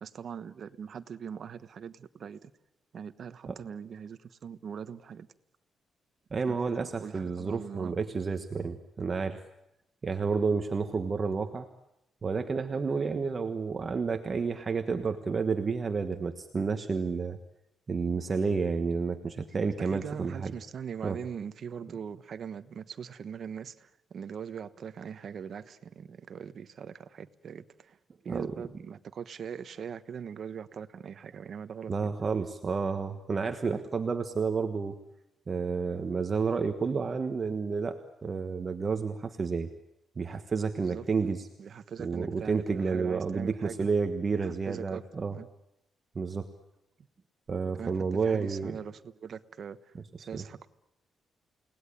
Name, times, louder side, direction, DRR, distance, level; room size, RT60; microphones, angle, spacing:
voice 1, 0.0-2.5 2.9-5.3 6.5-8.0 19.8-28.0 28.2-32.1 40.8-41.1 41.6-43.9 44.3-45.0 45.3-45.5 47.8-50.7, right 7 dB, 50° right, 12 dB, 1.1 m, -41 dB
voice 2, 6.3-9.4 10.0-11.7 12.2-17.4 17.9-20.5 21.0-21.2 28.3-28.5 31.9-35.0 35.5-39.7 40.2-41.5 42.0-45.4 46.1-46.5 47.5-48.8 50.3-50.7, right 5 dB, 30° right, 6 dB, 1.4 m, -30 dB
29.5 x 19.0 x 10.0 m, 0.87 s
cardioid pair, 155°, 0 cm